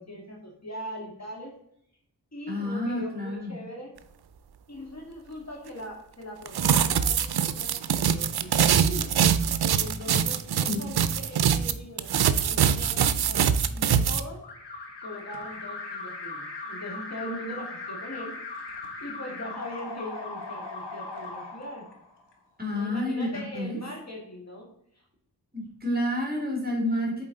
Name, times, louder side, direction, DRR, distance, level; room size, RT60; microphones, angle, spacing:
voice 1, 0.0-1.5 2.3-3.9 4.7-9.1 9.7-13.4 13.7-14.4 15.0-18.3 19.0-21.9 22.6-24.7, equal, 40° left, -1 dB, 1.9 m, -40 dB
voice 2, 2.5-3.6 10.7-10.8 22.6-23.8 25.5-27.2, left 1 dB, 20° right, 0 dB, 2.3 m, -29 dB
sound 1, 6.5-11.7 12.0-14.2, right 8 dB, 70° right, 0.5 m, -23 dB
Alarm, 14.4-22.3, left 3 dB, 85° left, 1.3 m, -39 dB
7.4 x 4.4 x 3.8 m, 0.71 s
wide cardioid pair, 75°, 40 cm